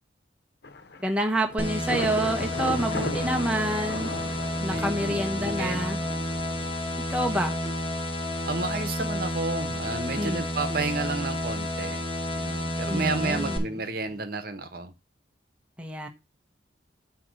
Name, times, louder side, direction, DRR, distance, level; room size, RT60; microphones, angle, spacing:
Thunder / Rain, 0.6-14.2, left 3 dB, 55° left, 0.7 m, -40 dB
voice 1, 1.0-6.0 7.1-7.5 10.2-10.4 12.9-13.8 15.8-16.1, right 1 dB, 5° right, 1.0 m, -28 dB
sound 1, 1.6-13.6, left 1 dB, 30° left, 1.3 m, -31 dB
voice 2, 2.7-3.3 4.7-5.8 8.5-12.0 12.3-14.9, right 3 dB, 50° right, 1.0 m, -32 dB
8.6 x 3.0 x 6.2 m
head